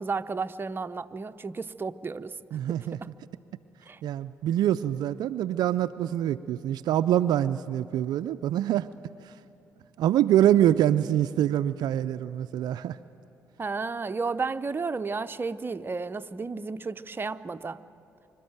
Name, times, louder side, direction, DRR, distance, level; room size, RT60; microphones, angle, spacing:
voice 1, 0.0-2.4 2.7-3.1 3.9-4.0 13.6-17.8, right 4 dB, 30° right, 0.7 m, -33 dB
voice 2, 2.5-3.0 4.0-8.9 9.2-9.3 10.0-13.0, right 11 dB, 65° right, 0.4 m, -25 dB
25.5 x 13.0 x 9.2 m
hypercardioid pair, 50°, 8 cm